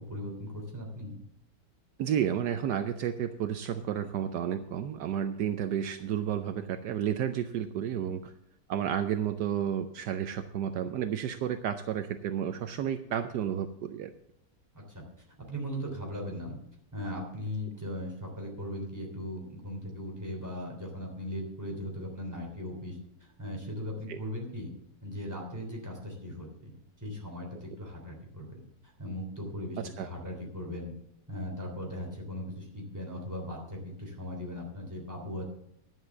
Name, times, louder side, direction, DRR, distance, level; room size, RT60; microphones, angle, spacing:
voice 1, 0.1-1.2 14.7-16.6 16.9-24.7 25.0-30.9 31.3-35.5, left 1 dB, 10° right, -1 dB, 3.2 m, -38 dB
voice 2, 2.0-8.3 8.7-14.1 24.1-24.2 29.8-30.1, right 9 dB, 75° right, 9 dB, 1.2 m, -31 dB
11.0 x 7.5 x 7.2 m, 0.76 s
omnidirectional pair, 1.9 m